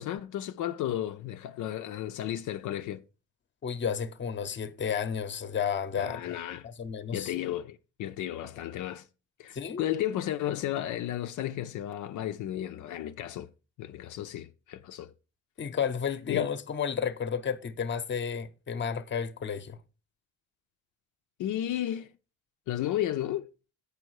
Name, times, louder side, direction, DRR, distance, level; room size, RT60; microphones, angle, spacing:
voice 1, 0.0-3.0 6.0-6.7 7.1-9.1 9.4-13.5 13.8-15.1 16.3-16.5 21.4-22.1 22.7-23.5, left 12 dB, 80° left, 0.6 m, -33 dB
voice 2, 3.6-6.4 6.6-7.3 9.5-9.8 15.6-19.8, left 7 dB, 40° left, 0.8 m, -32 dB
8.3 x 5.4 x 4.7 m
cardioid pair, 90°, 30 cm